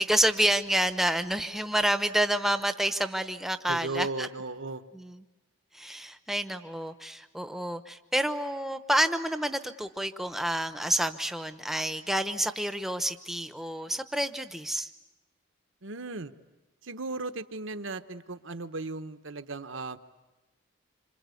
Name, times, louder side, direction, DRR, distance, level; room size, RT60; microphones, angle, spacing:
voice 1, 0.0-4.3 4.9-5.2 5.7-14.9, right 1 dB, ahead, 9 dB, 0.9 m, -28 dB
voice 2, 3.7-4.8 15.8-16.3 16.8-20.0, right 3 dB, 65° right, 10 dB, 1.1 m, -36 dB
27.0 x 26.0 x 8.4 m, 1.1 s
head